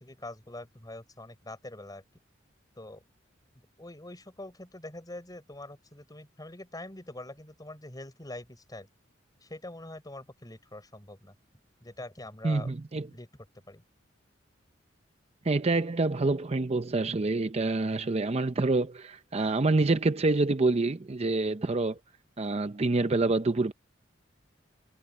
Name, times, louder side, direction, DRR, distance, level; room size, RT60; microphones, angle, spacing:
voice 1, 0.0-2.0 2.8-3.0 3.8-8.9 9.4-11.3 11.8-12.7 13.1-13.3 13.7-13.8, left 1 dB, 20° left, 4.7 m, -44 dB
voice 2, 12.4-13.1 15.4-22.0 22.4-23.7, right 3 dB, 35° right, 0.6 m, -27 dB
head